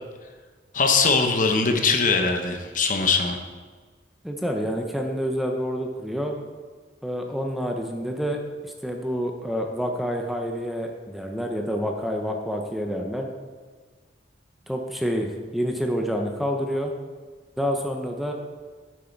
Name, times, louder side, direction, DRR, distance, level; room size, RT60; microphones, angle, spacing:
voice 1, 0.7-3.4, left 4 dB, 50° left, 5 dB, 1.0 m, -21 dB
voice 2, 4.2-6.4 7.0-13.3 14.7-16.9 17.6-18.3, equal, ahead, 2 dB, 0.8 m, -28 dB
9.2 x 7.6 x 4.6 m, 1.5 s
head